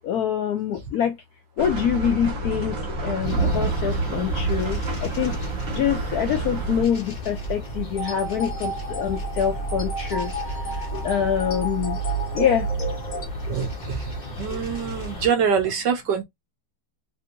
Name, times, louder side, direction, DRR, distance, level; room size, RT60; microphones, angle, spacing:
voice 1, 0.0-1.1 1.6-5.3 5.7-10.3 10.8-12.0 12.3-12.7 14.5-14.6, left 9 dB, 85° left, 0.8 m, -25 dB
sound 1, 1.6-6.8, right 2 dB, 45° right, 1.5 m, -28 dB
sound 2, 3.2-15.3, right 3 dB, 30° left, 1.1 m, -32 dB
sound 3, 7.9-13.3, equal, 50° left, 0.5 m, -33 dB
voice 2, 13.5-16.2, right 6 dB, 70° right, 1.2 m, -25 dB
3.5 x 2.6 x 2.6 m
omnidirectional pair, 2.2 m